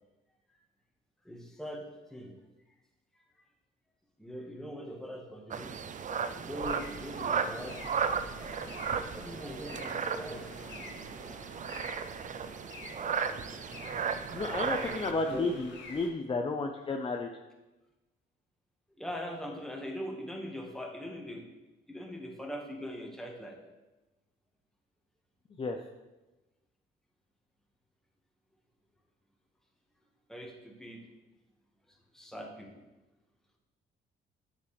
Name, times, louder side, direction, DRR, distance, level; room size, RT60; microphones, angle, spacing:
voice 1, 1.2-1.8 2.1-2.3 4.2-5.7 6.4-8.0 9.1-10.4 14.8-15.6 19.0-21.4 21.9-23.6 30.3-31.0 32.1-32.7, equal, ahead, 0 dB, 1.7 m, -41 dB
sound 1, 5.5-15.1, right 6 dB, 40° right, 0.5 m, -35 dB
sound 2, 6.5-16.1, left 3 dB, 65° left, 1.7 m, -48 dB
voice 2, 14.1-17.3 25.6-25.8, left 3 dB, 25° left, 3 dB, 0.6 m, -32 dB
8.2 x 7.3 x 3.4 m, 1.1 s
cardioid pair, 90°, 20 cm